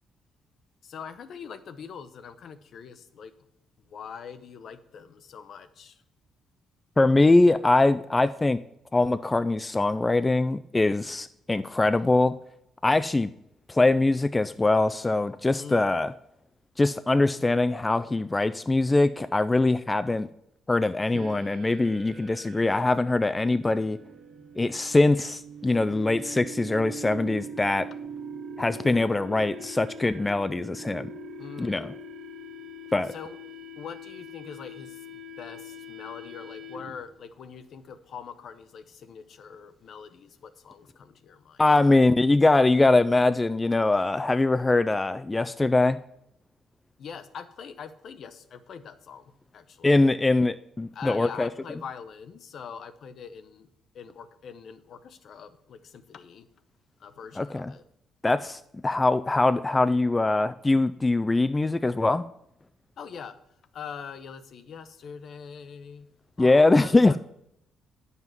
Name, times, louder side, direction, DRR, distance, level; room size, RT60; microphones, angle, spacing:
voice 1, 0.8-3.3 3.9-6.0 15.6-15.9 31.4-31.9 33.1-33.4 33.8-41.6 47.0-50.1 50.9-53.7 53.9-56.5 57.0-57.8 63.0-63.4 63.7-66.1 66.4-67.2, left 6 dB, 60° left, 12 dB, 0.8 m, -43 dB
voice 2, 7.0-8.6 8.9-12.4 12.8-13.3 13.7-16.1 16.8-20.3 20.7-24.0 24.6-27.9 28.6-31.1 31.6-31.9 32.9-33.1 41.6-46.0 49.8-51.5 57.4-57.7 58.2-62.2 66.4-67.2, left 2 dB, 20° left, 12 dB, 0.3 m, -22 dB
sound 1, 21.1-37.1, right 1 dB, 60° right, 0.8 m, -42 dB
9.5 x 5.6 x 6.0 m, 0.76 s
cardioid pair, 90°, 0 cm